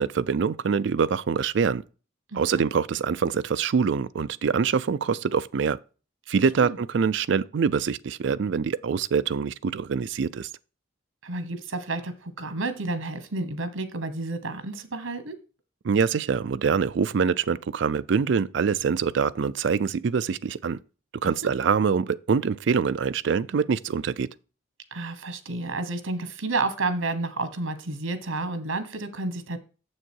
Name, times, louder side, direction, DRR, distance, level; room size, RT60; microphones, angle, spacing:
voice 1, 0.0-1.8 2.3-5.8 6.3-10.5 15.8-20.8 21.2-24.3, right 6 dB, 65° right, 0.4 m, -24 dB
voice 2, 2.3-2.6 6.6-6.8 11.2-15.4 21.2-21.5 24.9-29.6, right 2 dB, 80° right, 1.2 m, -31 dB
7.2 x 6.5 x 4.5 m
head